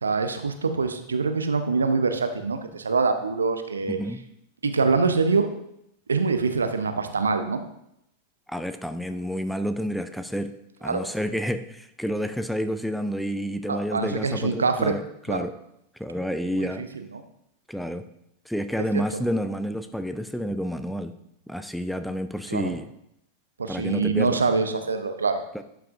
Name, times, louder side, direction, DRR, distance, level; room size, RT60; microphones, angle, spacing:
voice 1, 0.0-4.0 4.6-5.5 6.1-7.6 10.8-11.0 13.7-14.9 15.3-15.5 16.5-16.9 18.9-19.0 22.5-22.7 23.6-25.4, right 4 dB, 75° right, 8 dB, 0.6 m, -24 dB
voice 2, 3.8-4.2 8.5-10.5 10.8-15.0 15.3-15.5 16.0-16.8 17.7-18.0 18.5-21.1 21.5-22.9 23.7-24.4 25.5-25.6, equal, ahead, 9 dB, 0.4 m, -29 dB
11.5 x 5.8 x 2.5 m, 0.77 s
figure-of-eight pair, 90°, 0 cm